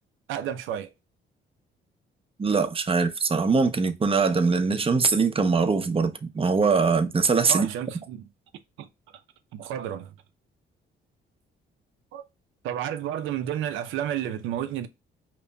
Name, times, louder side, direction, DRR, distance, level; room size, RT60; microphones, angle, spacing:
voice 1, 0.3-0.9 7.5-8.3 8.8-8.9 9.5-10.1 12.1-12.2 12.6-14.9, right 10 dB, 90° right, 0.6 m, -31 dB
voice 2, 2.4-7.7, right 4 dB, 30° right, 0.7 m, -22 dB
5.2 x 3.0 x 2.2 m
cardioid pair, 90°, 20 cm